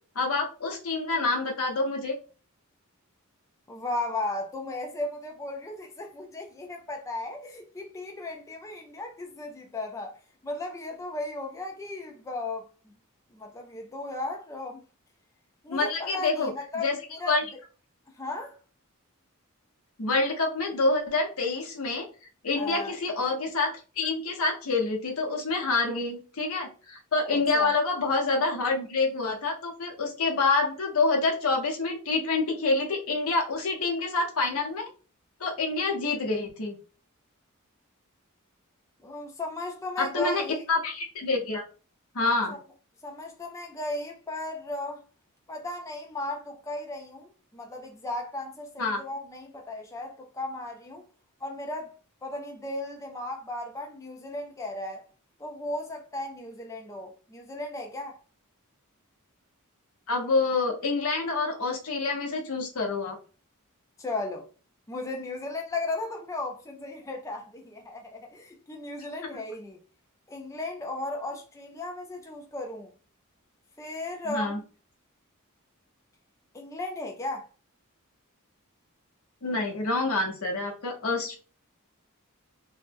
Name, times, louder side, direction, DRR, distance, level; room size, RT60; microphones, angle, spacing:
voice 1, 0.1-2.2 15.7-17.0 17.3-17.5 20.0-22.1 22.4-34.9 35.4-36.7 40.0-40.4 40.7-41.6 42.1-42.5 48.8-49.0 60.1-63.2 74.3-74.6 79.4-81.3, left 3 dB, 75° left, 0.8 m, -27 dB
voice 2, 3.7-10.1 10.4-12.7 13.3-14.8 15.6-17.3 18.2-18.6 22.6-22.9 27.5-27.7 39.0-40.6 42.5-42.6 43.0-45.0 45.5-51.0 51.4-51.9 52.2-55.0 55.4-58.2 64.0-64.5 64.9-69.8 70.3-72.9 73.8-74.6 76.5-77.5, left 2 dB, 15° left, 0.4 m, -35 dB
3.0 x 2.1 x 3.3 m
head